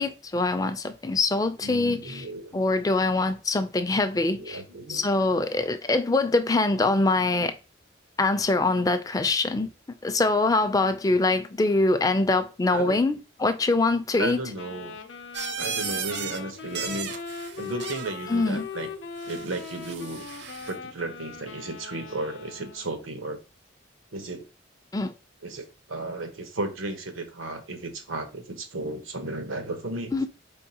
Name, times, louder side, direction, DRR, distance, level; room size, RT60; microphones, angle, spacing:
voice 1, 0.0-2.2 2.5-4.6 4.9-7.5 8.2-9.7 10.0-14.4 18.3-18.7 24.9-25.1 30.1-30.3, left 2 dB, 20° left, 0.3 m, -24 dB
voice 2, 1.6-2.6 4.3-5.0 12.7-13.0 14.2-15.0 15.6-17.1 17.6-18.9 19.3-20.3 20.7-23.4 24.1-24.5 25.4-30.3, right 2 dB, 90° right, 0.9 m, -34 dB
Wind instrument woodwind instrument, 14.5-23.0, left 5 dB, 65° left, 0.6 m, -40 dB
sound 1, 15.3-16.4 16.7-18.2 19.2-20.7, right 6 dB, 60° right, 0.6 m, -35 dB
4.5 x 3.6 x 2.8 m
head